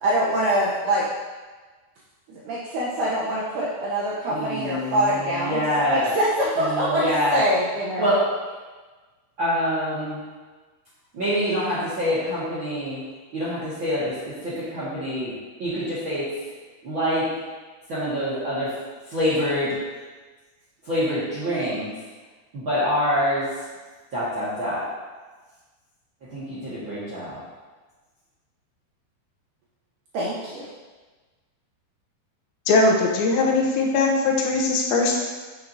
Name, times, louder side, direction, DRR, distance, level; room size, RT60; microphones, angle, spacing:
voice 1, 0.0-1.1 2.3-7.0 7.3-8.1 30.1-30.7, right 1 dB, 85° right, -6 dB, 1.8 m, -24 dB
voice 2, 4.3-6.1 6.5-7.4 8.0-8.2 9.4-10.2 11.1-13.0 13.3-15.3 15.6-16.3 16.8-17.4 17.9-18.7 19.0-19.8 20.8-21.9 22.5-23.7 24.1-24.9 26.2-27.4, equal, 65° right, -10 dB, 1.2 m, -26 dB
voice 3, 32.7-35.2, left 3 dB, 70° left, 0 dB, 2.5 m, -20 dB
9.0 x 7.4 x 2.8 m, 1.3 s
omnidirectional pair, 5.2 m